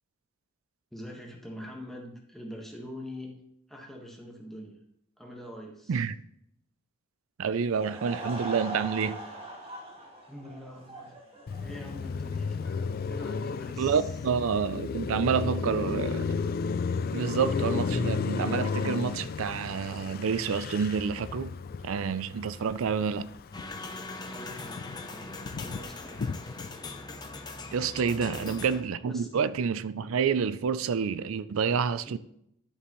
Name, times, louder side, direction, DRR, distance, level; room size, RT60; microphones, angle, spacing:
voice 1, 0.9-3.3 3.7-4.7 5.2-6.0 10.3-11.1 11.6-14.1 24.3-26.2 28.2-28.6 29.1-29.3 32.1-32.2, left 1 dB, ahead, 1.4 m, -44 dB
voice 2, 7.4-9.2 13.8-16.3 17.1-21.5 21.8-23.3 27.7-32.2, right 6 dB, 75° right, 0.4 m, -28 dB
Laughter / Crowd, 7.6-12.1, right 2 dB, 30° right, 1.7 m, -41 dB
Car passing by, 11.5-23.9 24.3-26.8, left 5 dB, 45° left, 0.3 m, -33 dB
sound 1, 23.5-28.8, left 3 dB, 20° left, 0.7 m, -41 dB
11.0 x 6.6 x 3.1 m
head